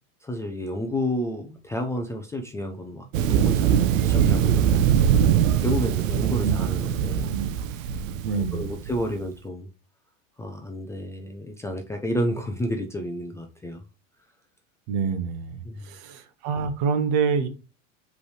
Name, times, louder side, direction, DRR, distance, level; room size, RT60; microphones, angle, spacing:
voice 1, 0.2-7.4 7.7-8.0 8.3-9.7 10.4-13.8 15.6-16.0, left 1 dB, 10° left, 0.4 m, -31 dB
Thunder, 3.1-9.0, right 9 dB, 80° right, 0.6 m, -22 dB
voice 2, 8.2-8.7 14.9-17.5, right 6 dB, 60° right, 1.1 m, -27 dB
5.1 x 3.3 x 3.2 m
supercardioid pair, 125°, 39 cm